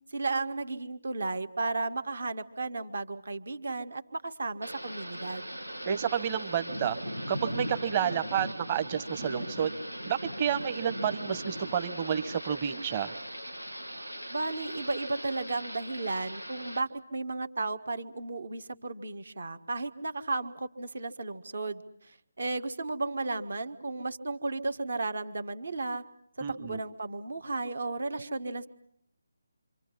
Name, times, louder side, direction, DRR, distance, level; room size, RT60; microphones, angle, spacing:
voice 1, 0.1-5.5 14.3-26.0 26.4-28.7, right 3 dB, 55° right, 10 dB, 1.6 m, -34 dB
Thunder / Rain, 4.6-16.8, equal, 90° right, 1.5 m, -39 dB
voice 2, 5.9-7.0 7.3-9.7 10.1-13.1 26.4-26.8, right 8 dB, 25° right, 11 dB, 1.2 m, -30 dB
27.5 x 27.0 x 5.6 m, 0.68 s
figure-of-eight pair, 150°, 0 cm